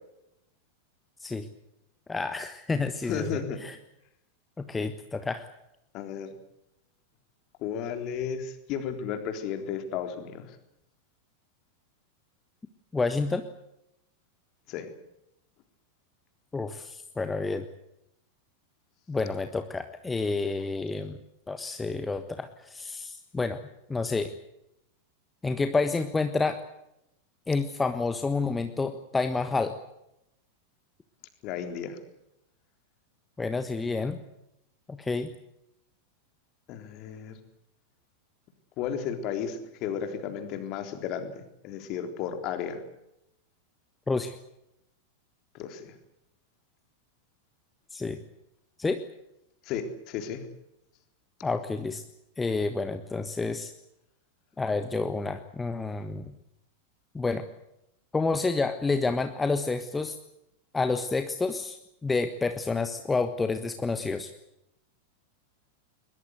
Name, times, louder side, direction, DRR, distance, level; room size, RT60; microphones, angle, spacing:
voice 1, 2.1-3.8 4.7-5.5 12.9-13.4 16.5-17.6 19.1-21.2 21.5-23.6 23.9-24.3 25.4-26.6 27.5-29.8 33.4-34.2 34.9-35.3 44.1-44.4 47.9-48.2 48.8-49.0 51.4-52.0 52.4-53.7 54.6-56.3 57.1-57.4 58.1-60.2 60.7-61.8 62.0-64.3, left 3 dB, 10° left, 9 dB, 1.4 m, -29 dB
voice 2, 3.1-3.6 5.9-6.3 7.6-10.6 14.7-14.9 31.4-32.0 36.7-37.4 38.8-42.8 45.5-45.9 49.7-50.5, left 8 dB, 40° left, 7 dB, 3.7 m, -34 dB
22.0 x 21.0 x 8.1 m, 0.82 s
figure-of-eight pair, 90°, 0 cm